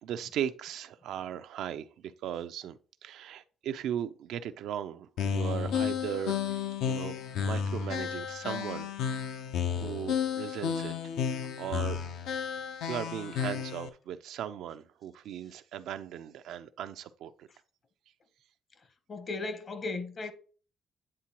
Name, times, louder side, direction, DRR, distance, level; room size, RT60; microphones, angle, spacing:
voice 1, 0.0-8.9 9.8-10.9 11.3-12.0 12.9-17.5, right 10 dB, 80° right, 0.4 m, -38 dB
sound 1, 5.2-13.9, left 7 dB, 85° left, 0.6 m, -32 dB
voice 2, 19.1-20.3, left 3 dB, 45° left, 0.8 m, -36 dB
8.8 x 3.7 x 2.9 m
cardioid pair, 90°, 0 cm